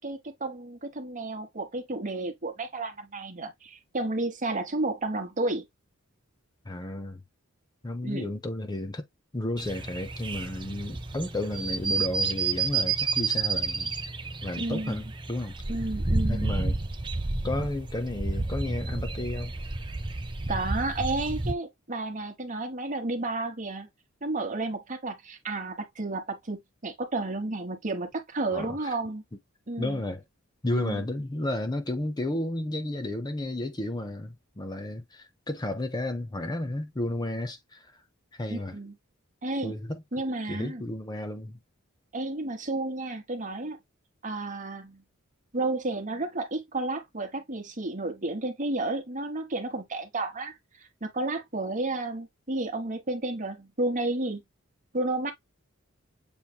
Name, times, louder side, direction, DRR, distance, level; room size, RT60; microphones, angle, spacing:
voice 1, 0.0-5.6 8.0-8.3 14.6-15.0 15.7-16.5 20.5-23.9 24.2-29.2 29.7-30.0 30.7-31.0 38.5-39.0 39.4-39.7 40.1-40.8 42.1-43.8 44.2-45.0 45.5-54.4 54.9-55.3, right 2 dB, 40° right, 1.1 m, -32 dB
voice 2, 6.6-7.2 7.8-9.0 9.3-13.9 14.4-15.6 16.3-16.8 17.4-19.5 28.5-28.9 29.8-30.2 30.6-37.9 38.3-38.8 39.6-40.0 40.5-41.6, left 1 dB, 20° left, 0.7 m, -32 dB
sound 1, 9.6-21.5, right 3 dB, 25° right, 0.6 m, -30 dB
7.1 x 3.2 x 2.2 m
head